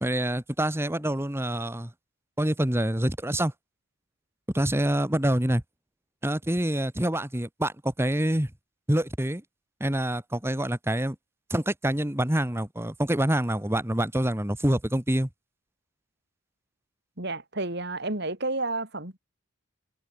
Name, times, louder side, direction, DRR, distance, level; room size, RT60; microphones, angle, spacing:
voice 1, 0.0-1.9 2.4-3.5 4.5-5.6 6.2-8.5 8.9-9.4 9.8-11.1 11.5-15.3, right 1 dB, 10° right, 1.5 m, -26 dB
voice 2, 17.2-19.2, right 2 dB, 50° right, 4.5 m, -31 dB
head